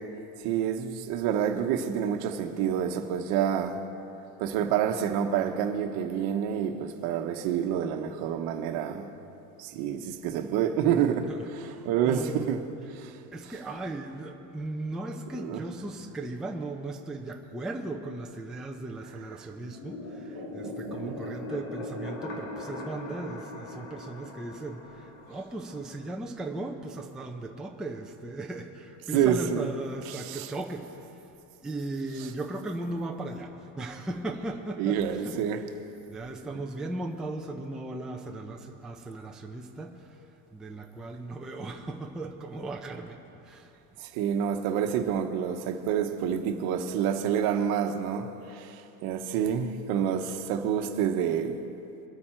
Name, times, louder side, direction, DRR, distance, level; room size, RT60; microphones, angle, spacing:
voice 1, 0.4-3.8 4.4-9.1 9.6-11.3 11.8-12.6 12.9-13.2 15.4-15.6 20.6-21.2 29.1-29.7 30.1-30.5 34.8-35.6 44.0-51.6, right 8 dB, 55° right, 1.2 m, -28 dB
voice 2, 11.3-12.5 13.3-31.3 31.6-35.4 36.1-44.0, right 2 dB, ahead, 0.6 m, -37 dB
sound 1, 19.6-26.2, left 2 dB, 75° left, 2.3 m, -40 dB
23.0 x 8.6 x 4.5 m
supercardioid pair, 140°, 44 cm